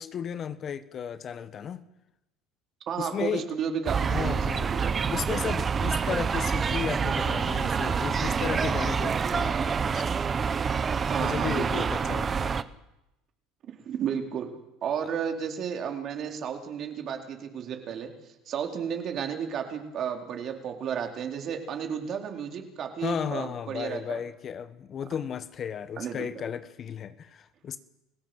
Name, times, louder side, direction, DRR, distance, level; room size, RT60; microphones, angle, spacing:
voice 1, 0.0-1.8 3.0-3.4 4.1-4.7 5.1-10.2 11.2-12.6 23.0-27.8, left 8 dB, 40° left, 13 dB, 1.5 m, -34 dB
voice 2, 2.9-5.0 11.1-11.9 13.7-14.5 14.8-24.2 26.0-26.3, right 7 dB, 45° right, 4 dB, 4.3 m, -33 dB
sound 1, 3.9-12.6, right 6 dB, 30° right, 1.1 m, -27 dB
30.0 x 16.5 x 8.1 m, 0.92 s
supercardioid pair, 100°, 0 cm